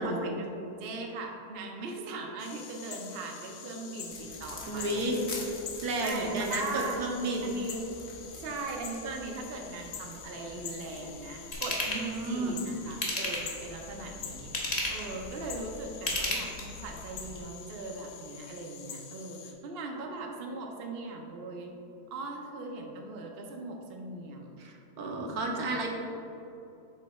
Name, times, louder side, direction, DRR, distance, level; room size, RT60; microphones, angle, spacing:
voice 1, 0.0-5.2 6.0-7.0 7.4-8.0 8.4-21.7 22.1-24.6, right 3 dB, 55° right, 1 dB, 0.7 m, -39 dB
sound 1, 2.4-19.5, left 7 dB, 90° left, 1.3 m, -46 dB
sound 2, 4.1-17.4, left 2 dB, 60° left, 1.4 m, -47 dB
voice 2, 4.7-5.2 5.8-7.5 11.9-12.7 24.6-25.9, right 2 dB, 75° right, 0 dB, 1.3 m, -32 dB
Ratchet pawl / Tools, 11.5-12.0 12.9-13.6 14.4-15.1 15.9-16.8 17.3-17.4, left 1 dB, 30° left, 0.9 m, -31 dB
7.3 x 3.3 x 4.2 m, 2.8 s
omnidirectional pair, 1.7 m